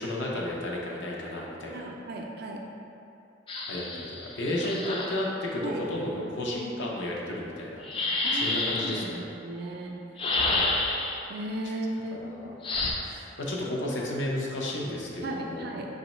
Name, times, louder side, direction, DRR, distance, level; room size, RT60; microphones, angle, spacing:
voice 1, 0.0-1.9 3.7-7.8 8.3-9.3 10.4-10.7 11.6-11.8 12.1-12.5 13.0-15.7, left 1 dB, 75° left, -3 dB, 0.6 m, -33 dB
voice 2, 1.7-2.6 5.6-5.8 8.2-10.0 11.3-12.4 15.2-15.9, right 1 dB, 55° right, 0 dB, 0.4 m, -36 dB
sound 1, 3.5-5.2 7.8-9.1 10.2-11.3 12.6-12.9, left 2 dB, 30° left, 0.3 m, -29 dB
4.0 x 3.1 x 3.0 m, 2.7 s
head